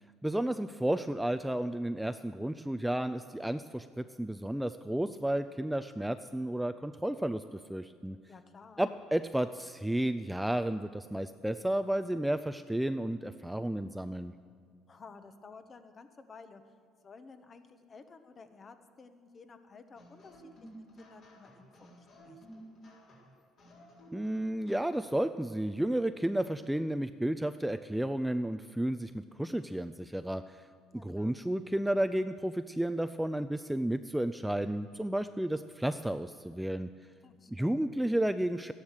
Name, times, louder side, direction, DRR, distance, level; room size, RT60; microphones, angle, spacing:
voice 1, 0.2-8.2 8.8-14.3 24.1-30.6 30.9-36.9 37.5-38.7, right 1 dB, 5° right, 10 dB, 0.4 m, -32 dB
voice 2, 8.3-8.8 14.9-16.7 17.0-22.5 30.9-31.4 37.2-37.8, left 4 dB, 40° left, 9 dB, 1.1 m, -54 dB
sound 1, 19.9-25.3, right 1 dB, 55° left, 4.2 m, -53 dB
12.5 x 10.5 x 6.6 m, 2.1 s
supercardioid pair, 80°, 0 cm